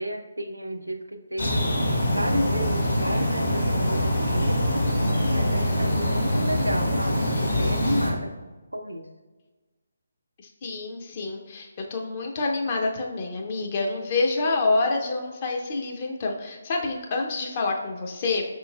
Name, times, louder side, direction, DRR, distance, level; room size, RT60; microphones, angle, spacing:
voice 1, 0.0-1.7 2.1-4.9 5.3-8.3 8.7-9.1, right 1 dB, 85° right, 6 dB, 0.4 m, -32 dB
sound 1, 1.4-8.1, left 1 dB, 70° left, 1.1 m, -24 dB
voice 2, 10.4-18.4, left 3 dB, 35° left, 1 dB, 0.5 m, -27 dB
5.1 x 3.0 x 2.3 m, 1.3 s
figure-of-eight pair, 145°, 0 cm